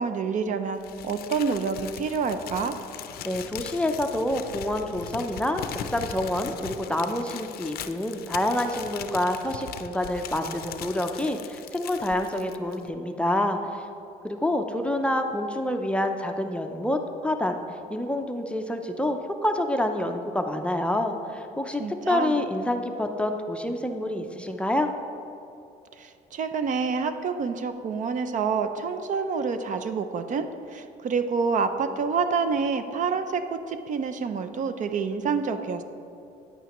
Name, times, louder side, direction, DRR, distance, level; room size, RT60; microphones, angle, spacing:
voice 1, 0.0-2.8 21.8-22.4 26.0-35.8, right 5 dB, 50° right, 9 dB, 0.5 m, -28 dB
Crumpling crinkling, 0.8-12.9, left 9 dB, 65° left, 0.5 m, -40 dB
voice 2, 3.2-13.8 14.2-17.6 17.9-21.8 22.1-24.9, left 1 dB, 5° left, 5 dB, 0.5 m, -27 dB
9.4 x 9.1 x 3.0 m, 2.7 s
cardioid pair, 110°, 17 cm